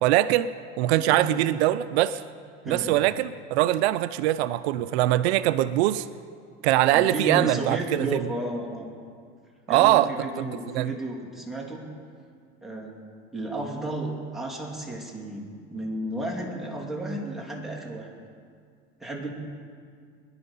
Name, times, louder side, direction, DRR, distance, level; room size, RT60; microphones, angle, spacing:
voice 1, 0.0-2.2 2.7-6.1 6.6-8.3 9.7-10.1 10.4-10.5 10.7-10.9, right 14 dB, 80° right, 14 dB, 0.6 m, -22 dB
voice 2, 1.0-1.5 2.6-2.9 6.9-8.9 9.7-11.9 12.6-13.0 13.3-18.1 19.0-19.3, right 1 dB, ahead, -2 dB, 2.7 m, -33 dB
22.0 x 11.0 x 5.6 m, 2.1 s
supercardioid pair, 135°, 32 cm